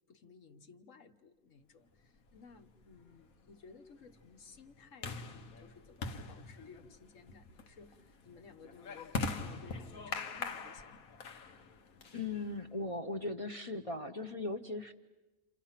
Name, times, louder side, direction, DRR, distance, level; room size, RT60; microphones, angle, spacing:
voice 1, 0.1-11.1, left 5 dB, 65° left, 7 dB, 1.5 m, -57 dB
sound 1, 2.3-12.7, left 4 dB, 90° left, 1.6 m, -43 dB
voice 2, 12.1-14.9, left 2 dB, 25° left, 3 dB, 0.9 m, -38 dB
29.0 x 28.5 x 5.9 m, 1.1 s
omnidirectional pair, 1.4 m